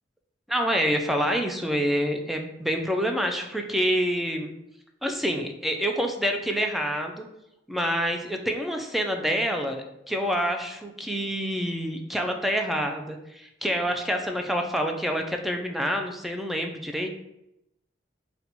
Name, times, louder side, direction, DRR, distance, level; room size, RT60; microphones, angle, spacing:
voice 1, 0.5-4.5 5.0-7.2 7.7-17.1, equal, ahead, 3 dB, 0.3 m, -27 dB
4.1 x 2.2 x 2.8 m, 0.85 s
head